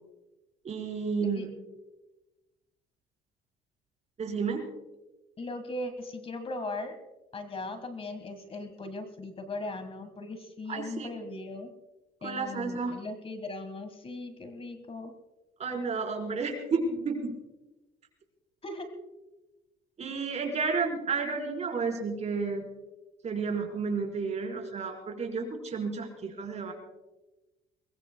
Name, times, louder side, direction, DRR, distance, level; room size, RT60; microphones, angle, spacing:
voice 1, 0.6-1.5 4.2-4.6 10.7-11.1 12.2-13.0 15.6-17.3 20.0-22.6 23.2-26.7, right 4 dB, 40° right, 1 dB, 4.3 m, -31 dB
voice 2, 5.4-7.0 7.3-11.7 12.2-15.1 18.6-18.9, left 2 dB, 35° left, 9 dB, 1.7 m, -38 dB
23.0 x 21.0 x 2.3 m, 1.1 s
cardioid pair, 110°, 17 cm